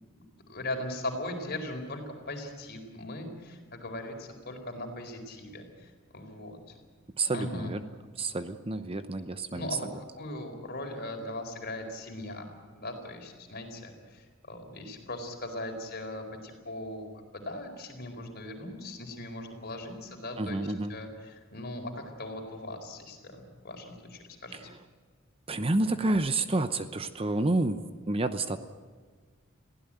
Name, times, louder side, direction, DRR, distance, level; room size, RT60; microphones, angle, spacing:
voice 1, 0.5-6.8 7.3-7.7 9.5-12.5 12.7-24.7, left 1 dB, 50° left, 4 dB, 4.4 m, -39 dB
voice 2, 7.2-7.8 8.2-9.8 20.4-20.9 25.5-28.6, right 2 dB, 25° right, 10 dB, 0.8 m, -29 dB
22.0 x 16.0 x 9.1 m, 1.5 s
head